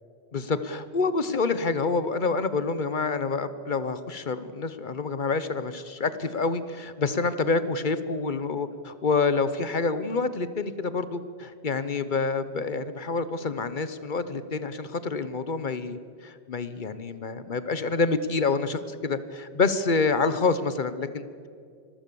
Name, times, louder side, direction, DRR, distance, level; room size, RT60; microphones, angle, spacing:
voice 1, 0.3-21.5, left 4 dB, 50° left, 13 dB, 1.0 m, -27 dB
25.0 x 15.0 x 7.0 m, 2.3 s
omnidirectional pair, 1.1 m